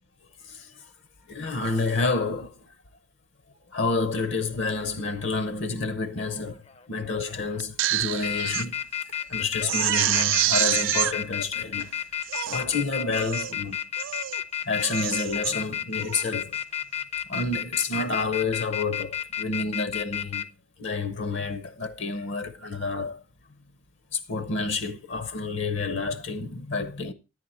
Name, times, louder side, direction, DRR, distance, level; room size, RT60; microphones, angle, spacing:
voice 1, 0.4-0.9 1.3-2.6 3.7-6.6 6.9-8.8 9.1-11.9 12.5-13.8 14.7-16.6 17.3-20.5 20.8-23.2 24.1-27.1, left 3 dB, 65° left, 0.7 m, -29 dB
sound 1, 5.1-5.5 6.2-6.8 7.3-7.6 8.0-20.4, left 10 dB, 30° left, 0.5 m, -31 dB
Crying sobbing, 7.6-8.7 9.1-9.2 9.6-11.1 11.8-11.9 12.2-12.6 13.1-13.5 14.0-14.4 14.8-15.5 16.0-16.3, right 13 dB, 70° right, 0.4 m, -27 dB
10.5 x 8.2 x 4.2 m
head